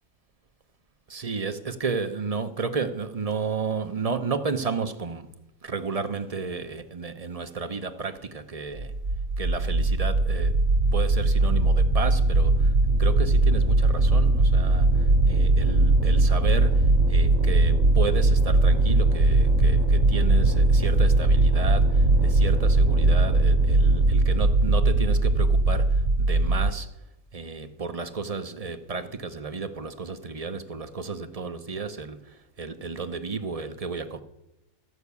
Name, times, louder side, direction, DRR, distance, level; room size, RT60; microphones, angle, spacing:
voice 1, 1.1-5.3 5.6-9.0 9.4-10.6 10.9-27.0 27.3-34.2, right 4 dB, 35° right, 0.7 m, -32 dB
sound 1, 8.8-26.7, right 2 dB, 65° right, 1.9 m, -20 dB
14.0 x 5.8 x 8.2 m
omnidirectional pair, 1.4 m